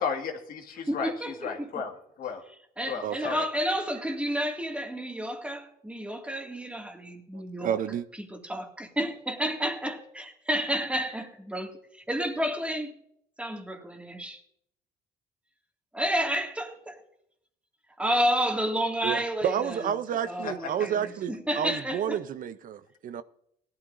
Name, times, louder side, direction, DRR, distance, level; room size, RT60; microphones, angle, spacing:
voice 1, 0.0-2.4 2.9-3.4 20.4-20.5, left 6 dB, 60° left, 1.9 m, -34 dB
voice 2, 0.9-1.8 2.8-7.8 8.1-13.0 13.4-14.4 15.9-17.0 18.0-19.9 20.2-22.2, equal, 5° right, 2.1 m, -31 dB
voice 3, 3.0-3.4 7.3-8.0 19.0-23.2, right 9 dB, 55° right, 0.6 m, -31 dB
17.5 x 12.5 x 2.6 m
cardioid pair, 110°, 17 cm